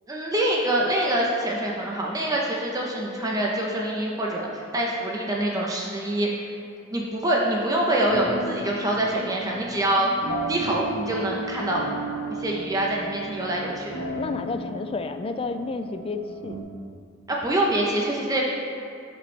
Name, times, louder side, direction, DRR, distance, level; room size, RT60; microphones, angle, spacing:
voice 1, 0.1-6.5 6.9-10.1 10.5-11.9 12.3-13.9 17.3-18.5, right 1 dB, 20° right, -2 dB, 0.8 m, -25 dB
sound 1, 8.0-16.6, right 1 dB, 75° left, 1.3 m, -35 dB
voice 2, 14.2-16.6, left 3 dB, 30° left, 9 dB, 0.3 m, -31 dB
11.5 x 5.3 x 3.3 m, 2.5 s
head